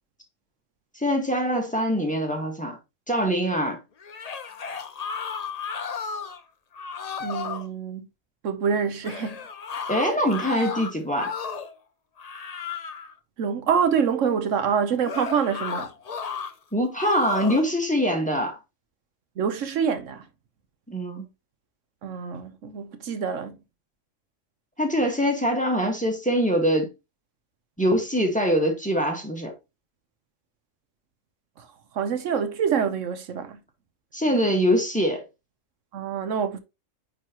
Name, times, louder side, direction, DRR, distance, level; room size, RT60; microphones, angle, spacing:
voice 1, 0.9-2.8 3.1-3.8 9.9-11.3 16.7-18.6 20.9-21.3 24.8-26.9 27.8-29.5 34.1-35.2, equal, 5° left, 1.5 m, -23 dB
sound 1, 4.0-6.4 6.7-7.7 9.0-11.8 12.2-13.1 15.0-16.5 17.0-17.7, left 6 dB, 45° left, 0.6 m, -34 dB
voice 2, 7.2-8.1 8.4-9.4 13.4-15.9 19.4-20.2 22.0-23.6 31.6-31.7 31.9-33.6 35.9-36.6, right 7 dB, 85° right, 1.2 m, -26 dB
9.1 x 3.9 x 2.9 m
omnidirectional pair, 1.3 m